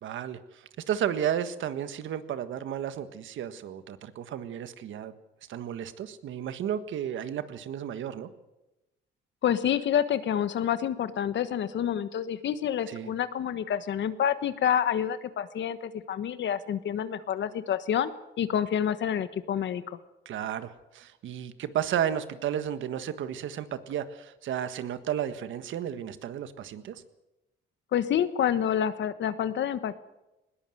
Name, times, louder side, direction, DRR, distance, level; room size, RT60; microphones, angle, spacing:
voice 1, 0.0-5.1 5.5-8.3 12.9-13.1 20.2-27.0, right 9 dB, 75° right, 12 dB, 1.5 m, -33 dB
voice 2, 9.4-18.1 18.4-19.8 27.9-29.9, left 9 dB, 65° left, 13 dB, 1.3 m, -28 dB
20.5 x 18.0 x 7.9 m, 0.98 s
cardioid pair, 90°, 20 cm